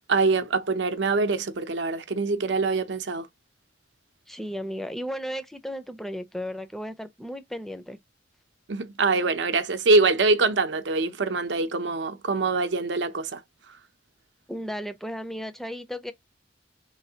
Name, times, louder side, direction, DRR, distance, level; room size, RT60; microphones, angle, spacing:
voice 1, 0.1-3.3 8.7-13.4, right 3 dB, 75° right, 0.6 m, -24 dB
voice 2, 4.3-8.0 14.5-16.1, equal, ahead, 0.4 m, -34 dB
4.3 x 3.2 x 2.8 m
head